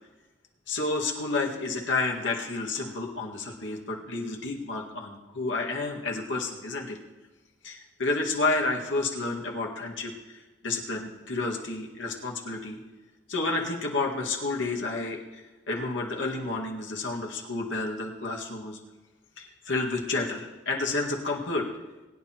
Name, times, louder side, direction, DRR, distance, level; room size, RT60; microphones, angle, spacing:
voice 1, 0.7-7.0 7.6-12.8 13.3-18.8 19.4-21.7, left 3 dB, 75° left, -1 dB, 1.9 m, -30 dB
22.0 x 9.8 x 3.0 m, 1.2 s
head